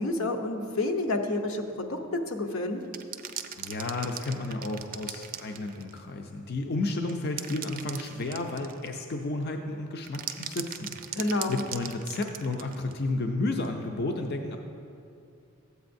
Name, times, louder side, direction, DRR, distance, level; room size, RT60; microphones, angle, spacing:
voice 1, 0.0-2.0 2.3-2.8 11.2-11.6, left 2 dB, 80° left, 5 dB, 0.7 m, -29 dB
sound 1, 2.8-6.0 7.1-9.0 10.0-13.0 13.6-13.7, right 10 dB, 40° right, 0.4 m, -39 dB
voice 2, 3.6-14.6, left 2 dB, 50° left, 4 dB, 0.5 m, -32 dB
13.0 x 8.1 x 2.6 m, 2.5 s
head